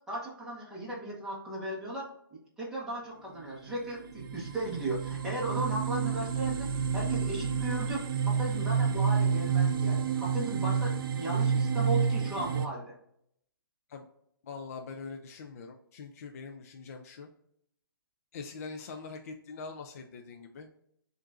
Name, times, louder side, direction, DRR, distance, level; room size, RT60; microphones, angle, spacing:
voice 1, 0.1-6.7 6.9-12.9, right 1 dB, 5° right, -6 dB, 1.1 m, -36 dB
sound 1, 3.7-3.8 4.2-12.7, right 6 dB, 65° right, 0.4 m, -29 dB
voice 2, 14.4-17.3 18.3-20.7, left 4 dB, 40° left, 3 dB, 0.4 m, -43 dB
7.3 x 2.5 x 2.5 m, 0.71 s
hypercardioid pair, 160°, 12 cm